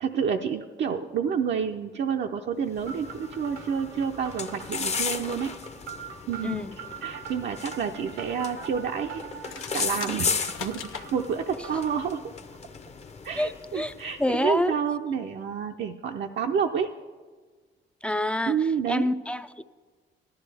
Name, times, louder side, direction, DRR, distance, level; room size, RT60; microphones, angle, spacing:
voice 1, 0.0-5.5 6.3-12.2 13.2-16.9 18.5-19.1, right 7 dB, 60° right, 3 dB, 0.6 m, -29 dB
sound 1, 2.7-14.4, left 5 dB, 35° left, 0.7 m, -35 dB
sound 2, 2.9-12.1, right 6 dB, 85° right, 0.9 m, -43 dB
sound 3, 9.4-11.1, left 8 dB, 90° left, 0.7 m, -38 dB
voice 2, 13.4-13.9 14.2-14.7 18.0-18.6 18.9-19.6, left 1 dB, 5° left, 12 dB, 0.4 m, -27 dB
16.5 x 12.0 x 3.4 m, 1.5 s
cardioid pair, 90°, 20 cm